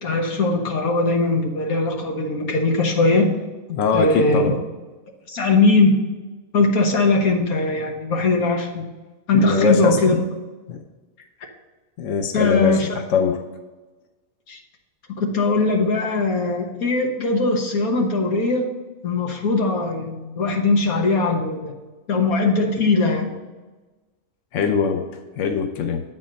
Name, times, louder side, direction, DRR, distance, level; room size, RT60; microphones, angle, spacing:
voice 1, 0.0-3.4 3.9-4.5 5.3-6.0 6.5-8.9 9.3-10.2 12.3-12.9 14.5-14.6 15.2-18.7 19.0-21.7 22.1-23.4, left 3 dB, 85° left, 2 dB, 1.7 m, -20 dB
voice 2, 3.7-4.5 9.4-10.0 10.7-10.8 12.0-13.4 24.5-25.1 25.4-26.0, left 6 dB, 65° left, 5 dB, 1.0 m, -22 dB
8.7 x 4.2 x 5.2 m, 1.2 s
omnidirectional pair, 1.5 m